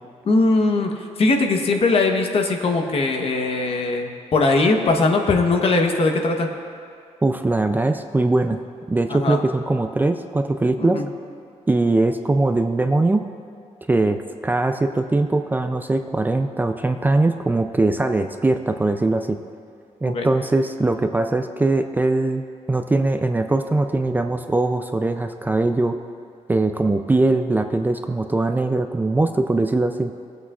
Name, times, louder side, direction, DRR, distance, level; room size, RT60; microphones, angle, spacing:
voice 1, 0.2-0.9 1.2-6.5 9.1-9.4 10.8-11.0 20.0-20.3, left 3 dB, 55° left, 3 dB, 1.1 m, -20 dB
voice 2, 7.2-8.6 8.9-11.0 11.7-13.2 13.9-19.4 20.0-26.0 26.5-30.1, right 2 dB, 15° right, 7 dB, 0.4 m, -21 dB
19.0 x 8.1 x 2.4 m, 2.3 s
cardioid pair, 105°, 12 cm